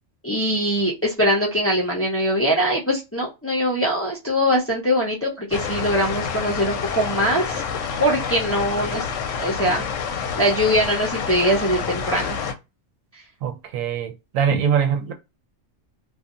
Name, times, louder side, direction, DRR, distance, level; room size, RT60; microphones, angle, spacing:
voice 1, 0.2-7.6 8.0-9.0 9.4-9.8 10.4-12.4, equal, 15° left, 0.6 m, -22 dB
sound 1, 5.5-12.5, left 6 dB, 70° left, 0.9 m, -28 dB
voice 2, 13.4-15.1, right 8 dB, 80° right, 1.0 m, -23 dB
2.6 x 2.4 x 2.4 m
omnidirectional pair, 1.4 m